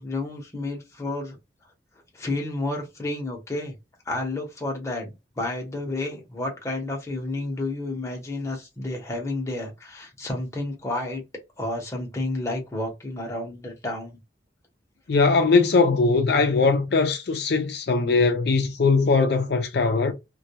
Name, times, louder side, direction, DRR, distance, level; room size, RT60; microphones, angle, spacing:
voice 1, 0.0-1.4 2.1-3.8 4.1-11.2 11.6-14.2, left 2 dB, 15° left, 0.8 m, -31 dB
voice 2, 15.1-20.1, left 4 dB, 60° left, 0.4 m, -20 dB
2.2 x 2.2 x 2.7 m
head